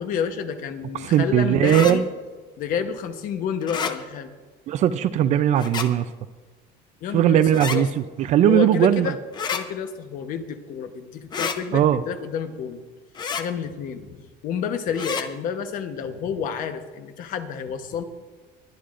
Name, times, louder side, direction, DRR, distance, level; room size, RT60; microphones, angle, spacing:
voice 1, 0.0-2.0 2.6-4.3 7.0-7.9 8.4-9.2 9.5-12.8 13.3-14.2 14.4-18.0, left 7 dB, 50° left, 7 dB, 1.0 m, -29 dB
voice 2, 0.9-2.0 4.7-6.1 7.1-9.1 11.7-12.0, right 10 dB, 40° right, 13 dB, 0.4 m, -19 dB
sound 1, 1.6-1.9 3.6-3.9 5.6-5.9 7.5-7.8 9.3-9.6 11.3-11.6 13.1-13.4 14.9-15.2, left 6 dB, 25° left, 0.7 m, -28 dB
22.5 x 10.0 x 2.5 m, 1.4 s
cardioid pair, 180°, 18 cm